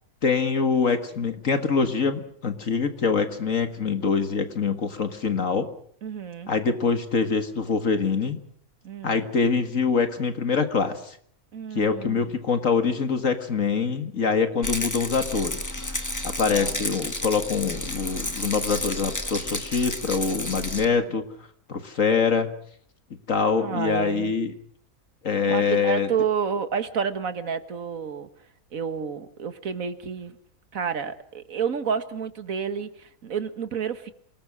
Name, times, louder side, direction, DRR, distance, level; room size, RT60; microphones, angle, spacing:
voice 1, 0.2-5.7 6.5-8.4 9.0-11.2 11.7-16.0 16.2-21.2 21.7-22.5 23.3-24.5 25.2-26.1, left 5 dB, 60° left, 9 dB, 2.0 m, -24 dB
voice 2, 6.0-6.5 8.8-9.3 11.5-12.3 16.5-16.9 23.6-24.4 25.4-28.3 28.7-30.4 30.7-34.1, right 7 dB, 65° right, 11 dB, 2.0 m, -30 dB
Rattle, 14.6-20.9, left 1 dB, 10° left, 1.8 m, -31 dB
28.0 x 19.5 x 6.3 m, 0.63 s
omnidirectional pair, 1.6 m